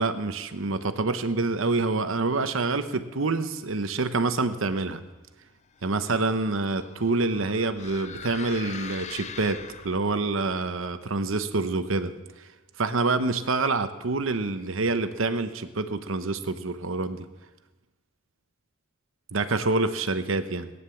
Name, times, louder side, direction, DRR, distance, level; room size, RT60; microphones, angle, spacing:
voice 1, 0.0-5.0 5.8-12.1 12.8-17.3 19.3-20.7, right 3 dB, 65° right, 10 dB, 0.9 m, -27 dB
sound 1, 5.8-10.2, left 7 dB, 30° left, 0.5 m, -42 dB
17.5 x 9.7 x 7.1 m, 1.2 s
head